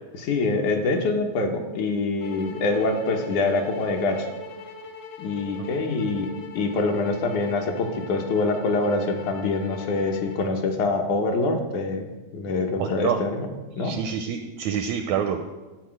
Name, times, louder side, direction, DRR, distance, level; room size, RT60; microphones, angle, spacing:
voice 1, 0.2-4.3 5.2-12.0 12.3-13.5 13.8-13.9, left 3 dB, 70° left, 3 dB, 2.4 m, -25 dB
sound 1, 2.2-10.6, left 4 dB, 90° left, 2.6 m, -41 dB
voice 2, 12.8-13.2 13.8-15.4, right 8 dB, 80° right, 6 dB, 1.6 m, -27 dB
12.0 x 4.9 x 7.6 m, 1.2 s
omnidirectional pair, 3.8 m